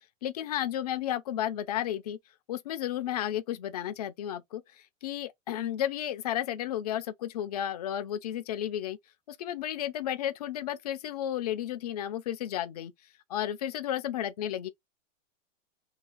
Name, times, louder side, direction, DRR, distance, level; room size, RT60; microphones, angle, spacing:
voice 1, 0.2-2.2 2.5-4.6 5.0-9.0 9.3-12.9 13.3-14.7, left 11 dB, 35° left, 0.4 m, -33 dB
2.5 x 2.3 x 3.8 m
hypercardioid pair, 155°, 38 cm